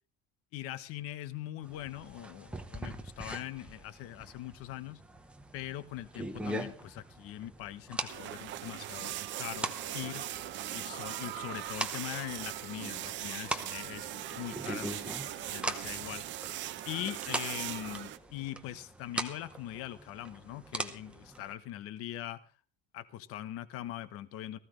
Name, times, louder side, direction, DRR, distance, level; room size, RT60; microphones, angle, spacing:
voice 1, 0.5-5.0 5.5-10.2 10.7-16.2 16.8-22.4 22.9-24.6, left 13 dB, 45° left, 14 dB, 1.1 m, -42 dB
sound 1, 1.6-21.5, right 1 dB, 5° right, 0.8 m, -42 dB
sound 2, 8.1-18.2, right 14 dB, 35° right, 0.8 m, -40 dB
sound 3, 9.4-16.2, left 7 dB, 65° left, 2.0 m, -56 dB
19.0 x 15.0 x 3.3 m, 0.36 s
cardioid pair, 175°, 31 cm